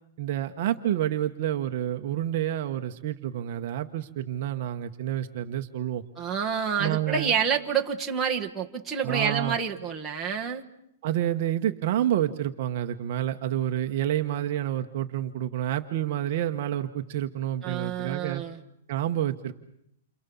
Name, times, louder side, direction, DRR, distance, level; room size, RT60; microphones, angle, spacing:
voice 1, 0.2-6.0 6.8-7.3 9.0-9.6 11.0-18.4 18.9-19.5, right 11 dB, 35° right, 6 dB, 1.0 m, -28 dB
voice 2, 6.2-10.6 17.6-18.6, right 7 dB, 5° right, -3 dB, 1.4 m, -28 dB
29.0 x 26.5 x 7.0 m, 0.75 s
hypercardioid pair, 180°, 0 cm